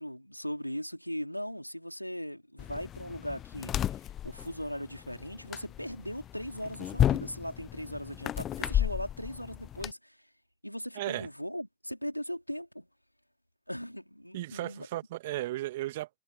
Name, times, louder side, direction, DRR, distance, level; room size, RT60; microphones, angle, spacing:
voice 1, 0.0-3.9 4.2-10.2 10.6-12.9 13.7-14.9, equal, 90° left, 3.8 m, -39 dB
sound 1, 2.6-9.9, left 11 dB, 35° left, 0.5 m, -33 dB
voice 2, 11.0-11.3 14.3-16.1, right 16 dB, 60° right, 1.8 m, -35 dB
figure-of-eight pair, 75°, 0 cm